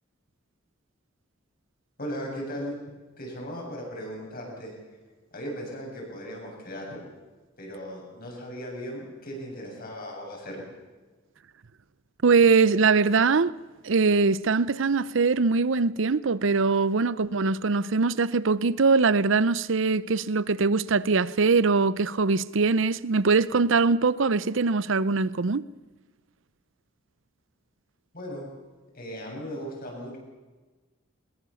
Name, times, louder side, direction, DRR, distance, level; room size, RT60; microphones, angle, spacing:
voice 1, 2.0-2.8 3.2-4.7 5.3-7.0 7.6-10.6 28.1-28.5 28.9-30.2, equal, 45° left, 7.8 m, -37 dB
voice 2, 12.2-13.5 13.8-25.6, right 4 dB, 65° right, 0.7 m, -22 dB
22.0 x 21.5 x 7.1 m
head